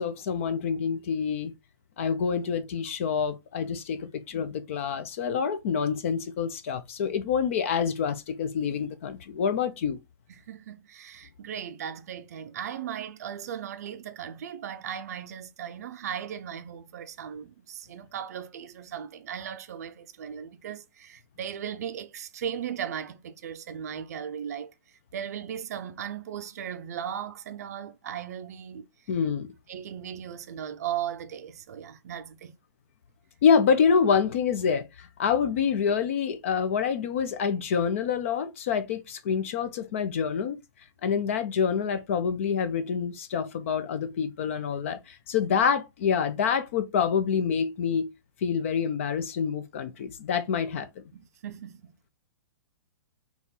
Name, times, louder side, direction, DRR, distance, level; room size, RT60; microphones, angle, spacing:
voice 1, 0.0-1.5 2.0-10.0 29.1-29.5 33.4-40.6 41.0-48.1 48.4-50.9, left 6 dB, 35° left, 0.5 m, -27 dB
voice 2, 10.3-24.7 25.1-28.9 29.7-32.5 51.1-52.1, right 9 dB, 45° right, 0.5 m, -37 dB
4.0 x 3.0 x 3.6 m
hypercardioid pair, 175°, 12 cm